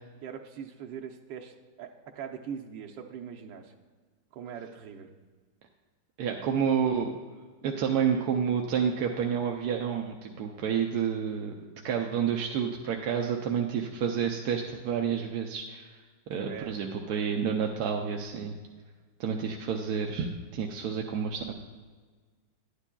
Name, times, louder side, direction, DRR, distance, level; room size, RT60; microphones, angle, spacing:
voice 1, 0.2-3.7 4.3-5.1 16.4-16.7, right 7 dB, 85° right, 2 dB, 1.4 m, -41 dB
voice 2, 6.2-7.2 7.6-11.5 11.8-16.0 16.3-18.5 19.2-21.5, right 7 dB, 70° right, 2 dB, 1.0 m, -29 dB
11.5 x 9.8 x 2.2 m, 1.4 s
omnidirectional pair, 2.0 m